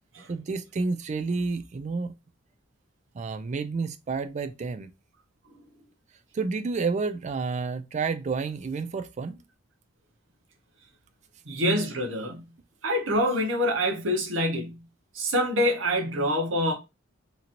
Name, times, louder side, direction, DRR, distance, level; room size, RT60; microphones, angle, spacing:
voice 1, 0.3-2.1 3.1-4.9 6.3-9.4, right 4 dB, 35° right, 0.3 m, -30 dB
voice 2, 11.5-12.4 12.8-14.9 15.1-16.7, equal, 75° right, 0.9 m, -26 dB
2.9 x 2.8 x 2.5 m
head